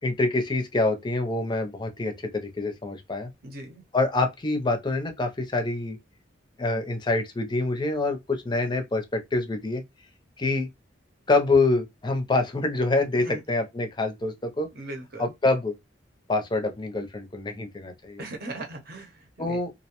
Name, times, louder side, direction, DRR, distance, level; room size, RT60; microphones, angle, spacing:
voice 1, 0.0-3.3 3.9-6.0 6.6-9.8 10.4-10.7 11.3-14.7 15.2-15.7 16.3-18.2 19.4-19.7, left 2 dB, 25° left, 0.5 m, -26 dB
voice 2, 3.4-3.8 13.2-13.4 14.7-15.3 18.2-19.6, right 2 dB, 55° right, 0.8 m, -39 dB
2.5 x 2.1 x 2.9 m
head